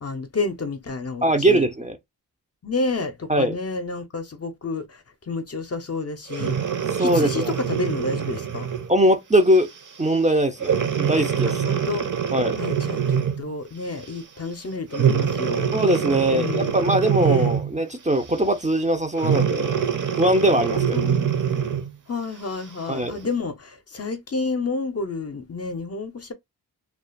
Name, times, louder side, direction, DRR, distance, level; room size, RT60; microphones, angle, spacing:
voice 1, 0.0-1.6 2.6-6.6 7.0-8.7 11.5-12.1 12.6-15.7 16.4-16.8 17.2-17.5 20.9-21.3 22.1-26.3, left 3 dB, 40° left, 0.5 m, -30 dB
voice 2, 1.2-2.0 3.3-3.6 7.0-7.6 8.9-9.7 10.0-11.6 12.3-12.6 15.7-19.7 20.2-21.1 22.9-23.2, right 1 dB, 20° right, 0.4 m, -21 dB
Breathing, 6.3-8.9 9.5-9.8 10.6-13.5 14.9-17.8 19.2-21.9 22.5-22.6, right 8 dB, 50° right, 0.7 m, -24 dB
2.4 x 2.2 x 2.4 m
cardioid pair, 65°, 41 cm